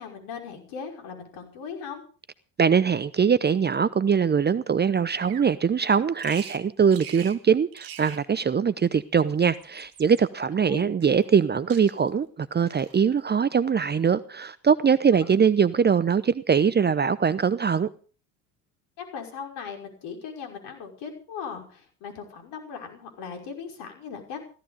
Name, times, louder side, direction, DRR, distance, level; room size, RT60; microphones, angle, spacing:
voice 1, 0.0-2.0 10.7-10.8 19.0-24.4, left 6 dB, 60° left, 5.8 m, -38 dB
voice 2, 2.6-17.9, right 6 dB, 20° right, 0.8 m, -22 dB
Bird vocalization bird call bird song, 5.2-5.5 6.2-6.6 6.9-7.4 7.7-8.2 9.2-10.2 11.0-11.4 11.7-12.2 12.7-13.0, right 9 dB, 50° right, 2.3 m, -44 dB
16.5 x 14.5 x 5.1 m
hypercardioid pair, 65°, 46 cm